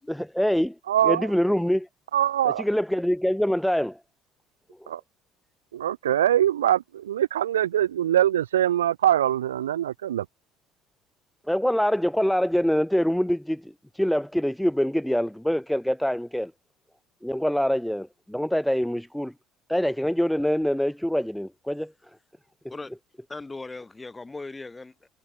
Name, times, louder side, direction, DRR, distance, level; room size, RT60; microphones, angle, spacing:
voice 1, 0.1-0.7 1.0-1.9 2.6-4.0 4.8-4.9 11.5-16.5 17.2-19.3 19.7-21.9, equal, ahead, 0.9 m, -25 dB
voice 2, 0.9-1.3 2.1-2.6 4.9-5.0 5.7-10.2, right 11 dB, 90° right, 0.9 m, -23 dB
voice 3, 23.3-25.1, left 3 dB, 20° left, 7.9 m, -38 dB
hypercardioid pair, 65°, 0 cm